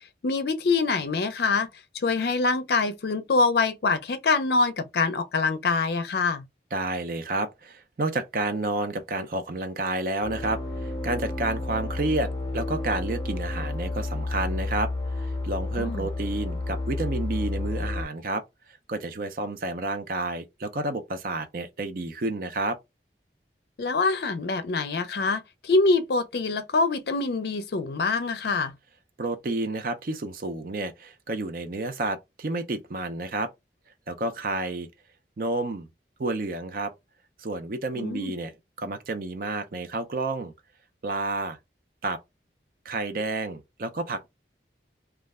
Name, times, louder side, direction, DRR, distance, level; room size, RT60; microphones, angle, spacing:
voice 1, 0.2-1.7 2.0-6.4 15.8-16.1 23.8-28.7 38.0-38.3, left 3 dB, 65° left, 0.4 m, -25 dB
voice 2, 6.7-18.4 18.9-22.8 29.2-33.5 34.1-34.9 35.4-35.9 36.2-36.9 37.4-38.5 38.8-40.5 41.0-41.6 42.0-42.2 42.8-44.3, right 2 dB, 50° right, 0.5 m, -30 dB
sound 1, 10.2-18.0, left 2 dB, 20° left, 0.7 m, -31 dB
2.3 x 2.1 x 3.4 m
head